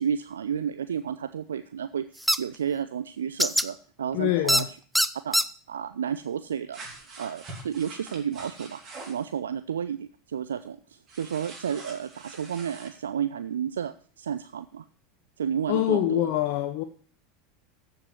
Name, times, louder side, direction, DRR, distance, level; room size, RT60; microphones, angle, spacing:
voice 1, 0.0-4.6 5.2-5.4 5.7-6.8 7.2-14.9 15.4-16.3, right 8 dB, 75° right, 0.4 m, -32 dB
sound 1, 2.3-2.4 3.4-3.7 4.5-4.6 4.9-5.4, equal, ahead, 0.5 m, -21 dB
voice 2, 4.1-4.7 15.7-16.8, left 13 dB, 55° left, 0.8 m, -25 dB
sound 2, 6.7-9.2 11.1-12.9, right 2 dB, 35° right, 3.8 m, -44 dB
14.0 x 5.3 x 7.0 m
figure-of-eight pair, 80°, 0 cm